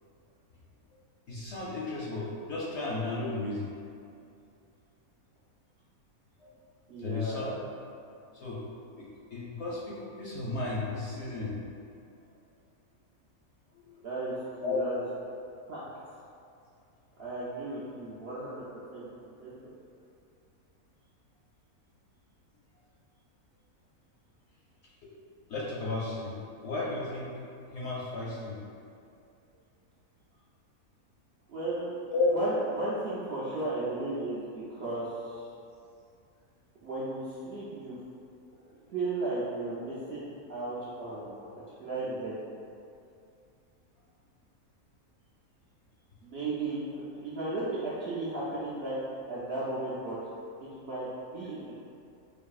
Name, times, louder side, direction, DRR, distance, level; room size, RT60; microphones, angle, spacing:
voice 1, 1.3-3.7 6.4-6.5 7.0-7.5 8.4-8.6 9.0-11.6 13.8-14.0 14.6-14.8 25.5-26.3 26.6-27.3 27.7-28.5 32.1-32.4, left 3 dB, 65° left, -6 dB, 0.7 m, -33 dB
voice 2, 6.9-7.6 14.0-15.0 15.7-15.8 17.2-19.5 31.5-31.9 32.3-35.5 36.8-37.9 38.5-41.4 41.8-42.4 46.2-49.0 49.3-50.2 50.7-51.9, right 2 dB, 65° right, -9 dB, 0.6 m, -35 dB
4.5 x 2.6 x 2.3 m, 2.5 s
omnidirectional pair, 1.6 m